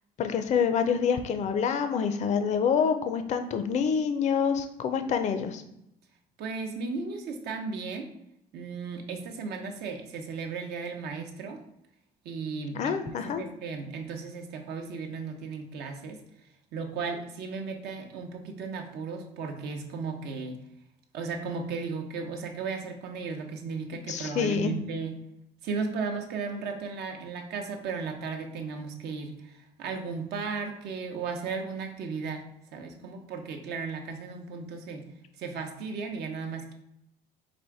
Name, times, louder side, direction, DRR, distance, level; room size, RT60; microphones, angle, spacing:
voice 1, 0.2-5.6 12.7-13.4 24.1-24.8, left 6 dB, 45° left, 9 dB, 0.4 m, -27 dB
voice 2, 6.4-8.1 8.5-11.6 12.2-16.2 16.7-20.6 21.1-25.1 25.6-32.4 32.7-35.1 35.4-36.7, right 4 dB, 75° right, 4 dB, 0.8 m, -35 dB
4.2 x 2.5 x 4.7 m, 0.80 s
cardioid pair, 110°, 17 cm